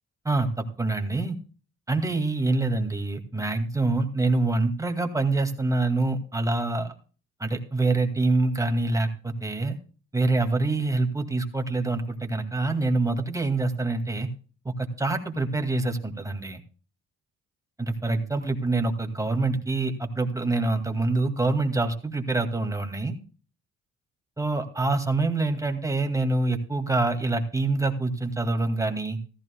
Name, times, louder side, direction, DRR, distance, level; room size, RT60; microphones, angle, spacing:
voice 1, 0.2-1.4 1.9-6.9 7.4-9.8 10.1-14.3 14.6-16.6 17.8-23.2 24.4-29.2, right 2 dB, 10° right, 5 dB, 2.1 m, -26 dB
15.5 x 14.0 x 2.3 m, 0.38 s
cardioid pair, 90°, 30 cm